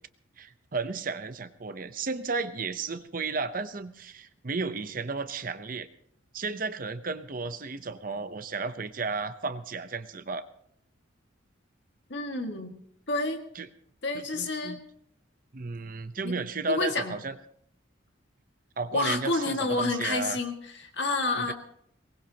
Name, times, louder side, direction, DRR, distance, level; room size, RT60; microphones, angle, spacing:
voice 1, 0.4-5.9 6.3-10.4 13.5-13.7 14.1-14.8 15.5-17.3 18.8-20.4 21.4-21.5, right 4 dB, 45° right, 10 dB, 0.8 m, -33 dB
voice 2, 12.1-12.7 13.1-13.4 14.0-14.8 16.2-16.4 16.7-17.1 18.9-21.5, left 2 dB, 60° left, 4 dB, 2.0 m, -29 dB
23.0 x 19.5 x 2.9 m, 0.70 s
head